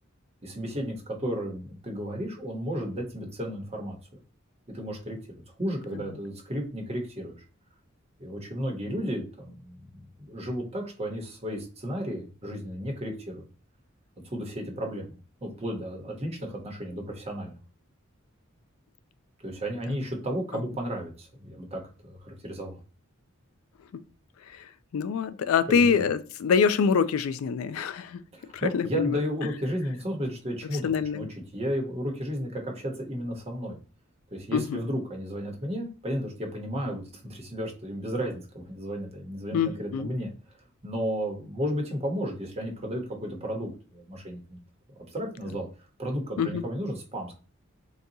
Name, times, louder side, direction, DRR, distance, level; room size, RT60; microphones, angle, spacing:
voice 1, 0.4-4.0 4.7-5.2 5.6-7.4 8.2-9.8 10.2-13.5 14.2-15.1 15.4-17.5 19.4-22.8 25.7-26.0 28.3-31.3 31.5-33.7 34.3-40.3 40.8-44.6 45.1-45.7 46.0-47.3, equal, 30° right, 1.0 m, -33 dB
voice 2, 24.9-28.2 28.5-29.2 30.8-31.3 34.5-34.8 39.5-40.1 46.4-46.6, left 6 dB, 80° left, 0.3 m, -25 dB
3.9 x 2.3 x 2.7 m
head